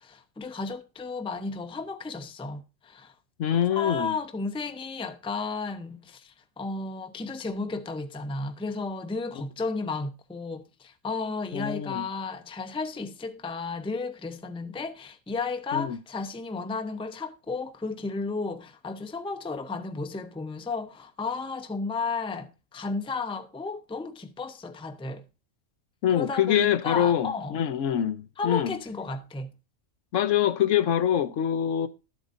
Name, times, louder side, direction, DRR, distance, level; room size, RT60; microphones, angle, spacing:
voice 1, 0.0-3.1 3.5-25.2 26.1-27.6 28.4-29.5, left 4 dB, 5° left, 0.6 m, -33 dB
voice 2, 3.4-4.1 11.5-12.0 15.7-16.0 26.0-28.7 30.1-31.9, left 10 dB, 70° left, 1.0 m, -25 dB
12.5 x 8.0 x 2.6 m
omnidirectional pair, 1.4 m